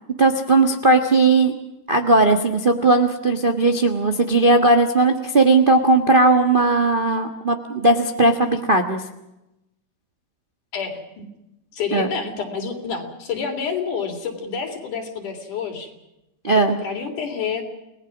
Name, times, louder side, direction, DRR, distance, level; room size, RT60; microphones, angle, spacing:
voice 1, 0.2-1.5 1.9-9.0 11.9-12.1 16.4-16.7, right 2 dB, 35° right, 5 dB, 0.8 m, -17 dB
voice 2, 10.7-11.2 11.7-15.9 16.7-17.6, left 6 dB, 75° left, 4 dB, 4.9 m, -28 dB
29.5 x 19.0 x 6.0 m, 0.90 s
omnidirectional pair, 3.6 m